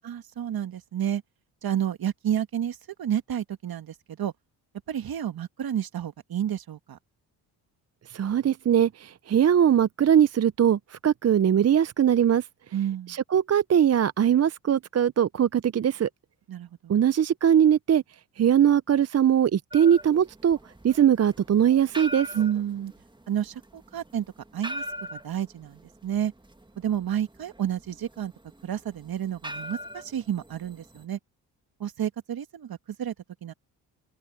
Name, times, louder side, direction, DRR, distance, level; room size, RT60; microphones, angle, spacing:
voice 1, 0.0-1.2 1.6-4.3 4.9-7.0 12.7-13.2 16.5-17.0 22.3-22.9 23.3-24.3 24.5-24.8 25.1-26.3 26.8-28.3 28.6-31.2 31.8-33.1 33.4-33.5, right 10 dB, 55° right, 2.1 m, -30 dB
voice 2, 8.1-12.4 13.1-16.1 16.9-18.0 18.4-20.6 20.8-22.3, right 9 dB, 35° right, 0.7 m, -21 dB
sound 1, 19.7-31.0, equal, 10° right, 1.9 m, -41 dB
open air
supercardioid pair, 60°, 42 cm